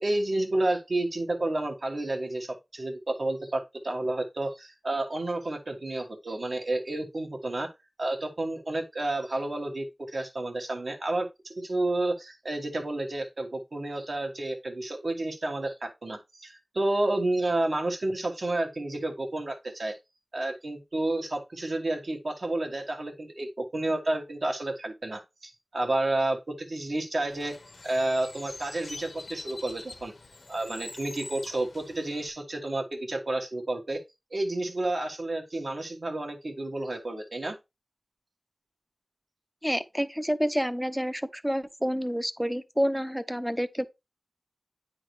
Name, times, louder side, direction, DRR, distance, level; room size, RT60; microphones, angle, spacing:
voice 1, 0.0-7.7 8.0-20.0 20.3-27.6 27.8-30.1 30.5-34.0 34.3-37.6, right 2 dB, 65° right, 1.4 m, -30 dB
Bird, 27.3-32.3, left 3 dB, 75° left, 1.0 m, -45 dB
voice 2, 39.6-43.8, equal, ahead, 0.5 m, -28 dB
9.3 x 3.8 x 3.1 m
wide cardioid pair, 75°, 0 cm